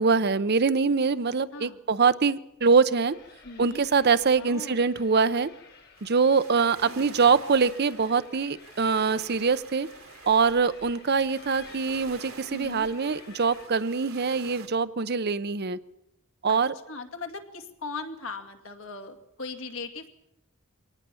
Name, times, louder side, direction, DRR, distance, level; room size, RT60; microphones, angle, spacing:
voice 1, 0.0-3.2 3.6-5.5 6.0-9.9 10.3-15.8 16.4-16.7, right 5 dB, 50° right, 14 dB, 0.7 m, -24 dB
sound 1, 3.1-13.6, left 5 dB, 50° left, 3.8 m, -53 dB
voice 2, 3.4-3.8 4.4-4.8 6.8-7.1 12.5-12.9 16.5-16.6 16.9-20.1, left 3 dB, 75° left, 5 dB, 2.4 m, -39 dB
sound 2, 6.0-14.7, right 5 dB, 85° right, 2.2 m, -48 dB
24.0 x 18.5 x 7.0 m, 0.84 s
head